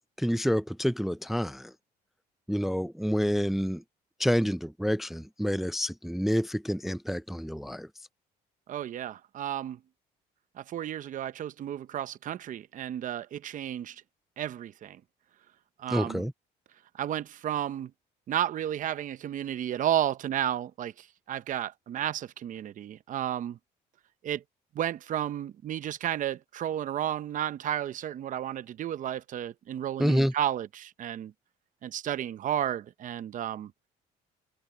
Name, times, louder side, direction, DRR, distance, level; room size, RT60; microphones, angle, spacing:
voice 1, 0.2-1.7 2.5-3.8 4.2-7.9 15.9-16.3 30.0-30.3, equal, ahead, 0.4 m, -28 dB
voice 2, 8.7-9.8 10.6-14.0 14.4-15.0 15.8-16.3 17.0-17.9 18.3-23.6 24.2-24.4 24.7-31.3 31.8-33.7, right 11 dB, 50° right, 0.8 m, -32 dB
open air
cardioid pair, 110°, 17 cm